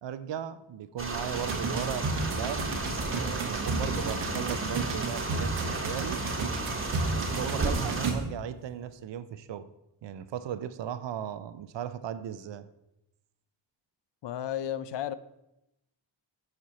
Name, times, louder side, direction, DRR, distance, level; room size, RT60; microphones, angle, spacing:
voice 1, 0.0-6.3 7.0-9.7 10.0-12.7, right 9 dB, 65° right, 13 dB, 0.6 m, -37 dB
sound 1, 1.0-8.1, right 2 dB, 25° right, 1.2 m, -33 dB
sound 2, 1.3-8.6, right 3 dB, 90° right, 1.1 m, -33 dB
voice 2, 14.2-15.1, left 11 dB, 65° left, 14 dB, 0.5 m, -33 dB
7.7 x 4.3 x 4.1 m, 0.88 s
cardioid pair, 50°, 47 cm